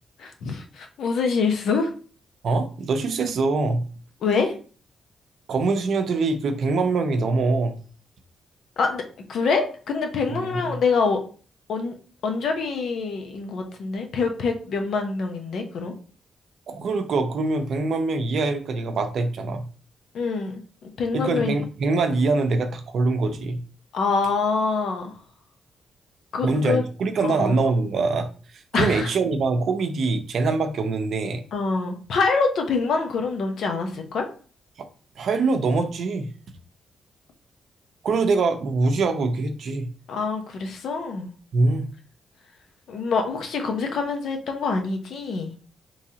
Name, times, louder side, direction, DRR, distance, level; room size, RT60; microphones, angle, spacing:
voice 1, 0.2-1.9 4.2-4.5 8.8-9.0 9.3-11.2 11.7-11.9 12.2-15.9 20.1-21.6 23.9-25.1 26.3-26.8 27.2-27.6 28.7-29.1 31.5-34.3 40.1-41.3 42.9-45.5, left 4 dB, 70° left, 0.8 m, -25 dB
voice 2, 2.4-3.9 5.5-7.8 10.3-10.8 16.7-19.7 21.1-23.6 26.4-28.3 28.5-31.4 34.8-34.9 35.2-36.3 38.0-39.9 41.5-41.9, right 3 dB, 65° right, 0.6 m, -24 dB
3.9 x 3.1 x 2.8 m
cardioid pair, 85°, 0 cm